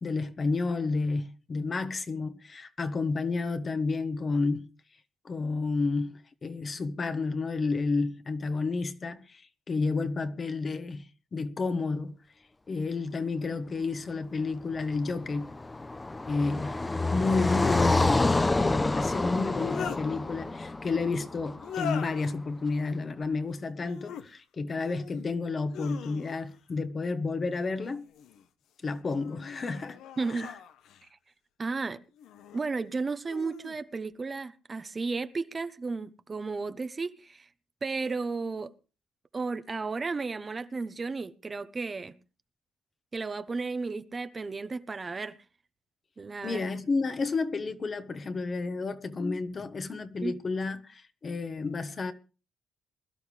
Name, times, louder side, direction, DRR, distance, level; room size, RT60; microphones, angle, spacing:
voice 1, 0.0-4.7 5.2-12.1 12.7-15.5 16.3-16.8 17.1-28.0 28.8-30.0 30.3-30.5 46.4-52.1, left 3 dB, 40° left, 1.3 m, -31 dB
sound 1, 14.8-14.9 17.2-17.8 19.3-20.0 21.6-22.3 23.8-24.3 24.8-25.3 25.7-26.6 27.8-28.4 29.1-31.1 32.2-32.6 33.2-33.8, left 7 dB, 80° left, 1.0 m, -41 dB
Car passing by, 14.8-22.0, left 2 dB, 20° left, 0.7 m, -28 dB
voice 2, 30.2-30.5 31.6-32.0 32.5-37.5 37.8-38.7 39.3-42.1 43.1-45.4 46.2-46.6 50.2-50.3, right 4 dB, 30° right, 0.9 m, -33 dB
21.0 x 12.0 x 3.3 m
cardioid pair, 90°, 0 cm